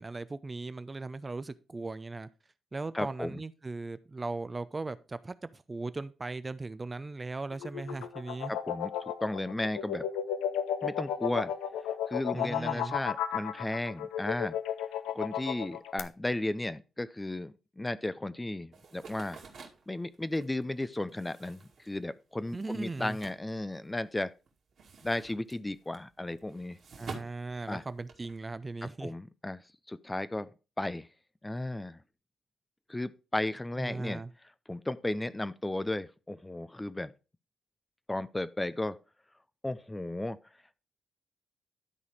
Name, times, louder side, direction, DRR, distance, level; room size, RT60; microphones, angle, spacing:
voice 1, 0.0-2.3 2.7-8.5 12.3-13.0 22.5-23.2 27.0-29.1 33.8-34.3, right 3 dB, 30° right, 0.7 m, -38 dB
voice 2, 2.9-3.4 8.5-8.9 9.2-10.1 10.8-11.5 12.1-14.6 15.1-19.4 19.9-24.3 25.0-26.8 27.7-27.8 28.8-29.6 29.9-30.5 30.8-31.1 31.4-32.0 32.9-34.2 34.7-37.1 38.1-39.0 39.6-40.4, left 1 dB, 20° left, 0.6 m, -34 dB
sound 1, 7.5-16.0, left 9 dB, 80° left, 0.6 m, -33 dB
sound 2, 18.7-24.2 24.5-28.4, right 4 dB, 60° right, 2.3 m, -49 dB
12.0 x 4.1 x 4.9 m
hypercardioid pair, 45°, 0 cm